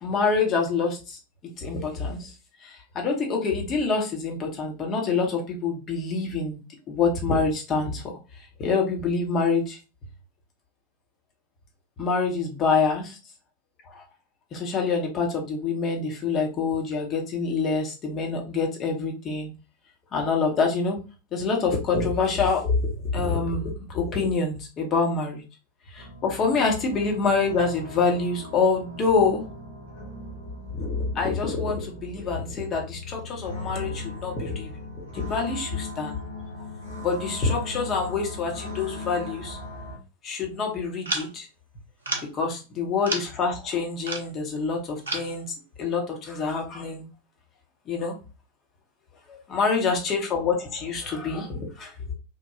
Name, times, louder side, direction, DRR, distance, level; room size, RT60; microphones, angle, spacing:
voice 1, 0.0-1.2 1.6-2.3 2.6-8.0 8.4-9.8 12.0-13.2 13.9-14.0 14.5-19.5 20.1-21.0 21.3-25.4 25.9-29.4 30.7-34.7 35.0-36.2 37.0-39.6 40.2-41.5 42.3-45.5 45.8-47.1 47.9-48.2 49.3-52.1, left 4 dB, 30° left, 1 dB, 0.9 m, -26 dB
sound 1, 26.0-40.0, left 2 dB, 70° left, 1.0 m, -39 dB
sound 2, 41.0-41.4 42.0-42.4 43.0-43.4 44.1-44.3 45.1-45.4, right 3 dB, 70° right, 0.6 m, -31 dB
3.0 x 2.2 x 2.4 m, 0.30 s
figure-of-eight pair, 90°, 0 cm